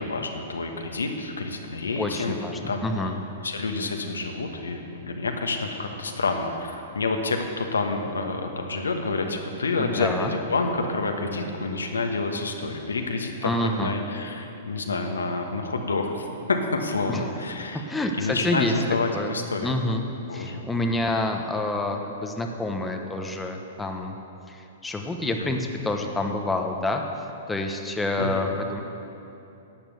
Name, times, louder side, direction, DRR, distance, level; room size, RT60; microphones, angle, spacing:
voice 1, 0.0-2.4 2.7-2.9 3.4-13.5 13.8-17.8 18.2-19.7 20.3-20.7 25.2-25.5 28.2-28.5, left 3 dB, 80° left, 4 dB, 1.2 m, -28 dB
voice 2, 2.0-3.2 9.8-10.3 13.4-13.9 17.1-17.2 17.7-18.8 19.1-19.4 19.6-20.0 20.3-24.2 24.5-27.0 27.5-28.8, left 2 dB, 10° left, 3 dB, 1.0 m, -28 dB
12.0 x 8.9 x 6.8 m, 2.9 s
figure-of-eight pair, 110°, 0 cm